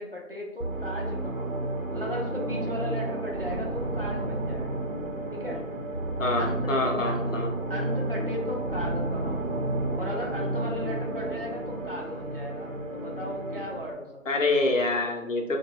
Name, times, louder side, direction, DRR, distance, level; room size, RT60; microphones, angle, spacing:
voice 1, 0.0-1.5 1.9-4.8 5.3-5.6 6.4-6.6 7.0-7.2 7.7-9.5 10.0-14.1, equal, 45° right, -2 dB, 0.6 m, -36 dB
sound 1, 0.6-13.9, right 1 dB, 80° right, 0.8 m, -31 dB
voice 2, 6.2-7.5 14.3-15.6, left 2 dB, 70° left, 2 dB, 0.7 m, -26 dB
2.8 x 2.2 x 3.4 m, 0.94 s
figure-of-eight pair, 175°, 40 cm